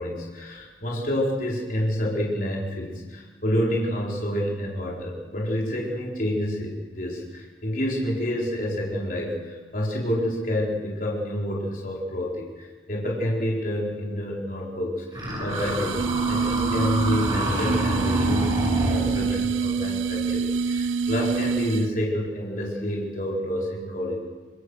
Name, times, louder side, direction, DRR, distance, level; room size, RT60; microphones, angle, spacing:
voice 1, 0.0-24.2, equal, 45° left, -3 dB, 4.6 m, -28 dB
sound 1, 15.1-19.5, equal, 25° right, 6.1 m, -27 dB
sound 2, 15.5-22.0, right 5 dB, 85° right, 0.7 m, -26 dB
25.5 x 22.5 x 6.5 m, 1.4 s
head